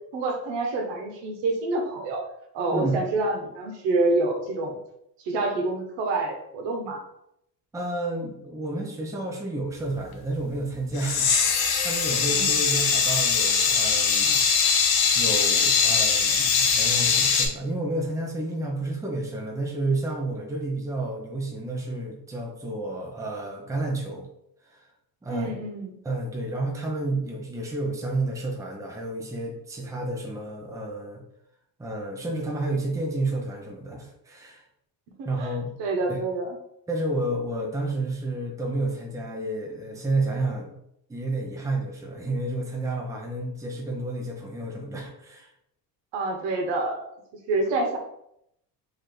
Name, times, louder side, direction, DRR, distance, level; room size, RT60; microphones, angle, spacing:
voice 1, 0.1-2.2 2.5-4.8 5.2-7.0 12.3-12.6 25.3-25.9 35.2-35.5 35.8-36.5 46.1-47.0 47.5-48.0, right 2 dB, 80° right, 2 dB, 1.0 m, -27 dB
voice 2, 2.7-3.1 7.7-14.4 15.1-24.3 24.7-24.9 25.2-25.5 26.0-31.2 31.8-34.6 35.2-35.7 36.0-36.2 36.9-40.7 41.1-45.5, right 2 dB, 10° right, 0 dB, 0.6 m, -30 dB
sound 1, 11.0-17.5, left 6 dB, 55° left, 0.8 m, -22 dB
3.8 x 2.7 x 3.2 m, 0.78 s
cardioid pair, 125°, 43 cm